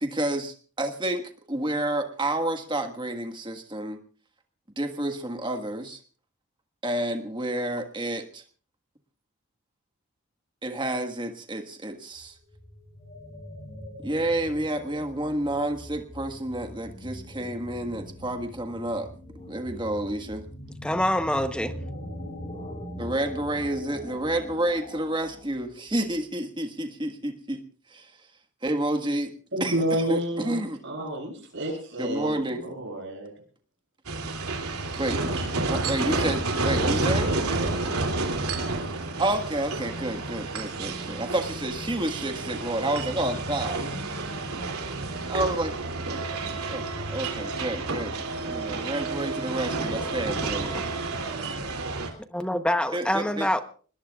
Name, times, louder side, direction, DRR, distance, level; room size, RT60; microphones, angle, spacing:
voice 1, 0.0-4.0 4.8-6.0 6.8-8.4 10.6-12.4 14.0-19.1 19.5-20.5 23.0-27.6 27.9-28.1 28.6-29.3 29.6-31.1 32.0-32.6 35.0-35.2 35.7-37.3 39.2-43.8 45.3-45.7 46.7-46.8 47.1-50.7 52.9-53.5, right 1 dB, 20° right, 1.5 m, -30 dB
sound 1, 12.2-26.3, equal, 30° left, 4.2 m, -42 dB
voice 2, 20.8-21.8 50.7-50.8 52.3-53.6, left 1 dB, 5° left, 0.9 m, -25 dB
voice 3, 29.5-33.3 36.8-37.8, right 1 dB, 55° right, 7.9 m, -31 dB
sound 2, 34.1-52.1, right 3 dB, 85° right, 2.8 m, -30 dB
25.5 x 20.0 x 2.4 m
head